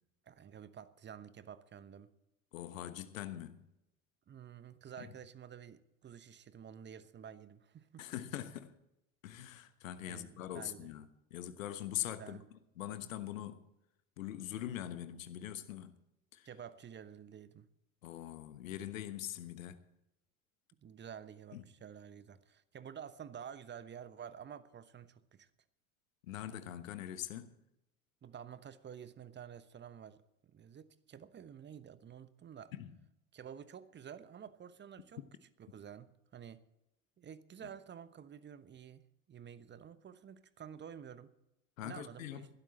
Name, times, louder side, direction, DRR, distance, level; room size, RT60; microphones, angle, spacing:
voice 1, 0.3-2.1 4.3-8.1 10.1-10.9 12.2-12.5 16.4-17.7 20.8-25.5 28.2-32.7 33.3-35.2 35.6-36.6 37.2-39.0 39.3-41.3 41.8-42.5, right 8 dB, 25° right, 1.0 m, -50 dB
voice 2, 2.5-3.6 5.0-5.1 8.0-8.7 9.2-12.4 12.8-13.6 14.2-16.0 16.3-16.5 18.0-19.8 21.5-21.6 26.2-27.5 32.7-32.9 41.8-42.5, left 12 dB, 70° left, 1.3 m, -43 dB
21.0 x 12.5 x 4.3 m
figure-of-eight pair, 70°, 41 cm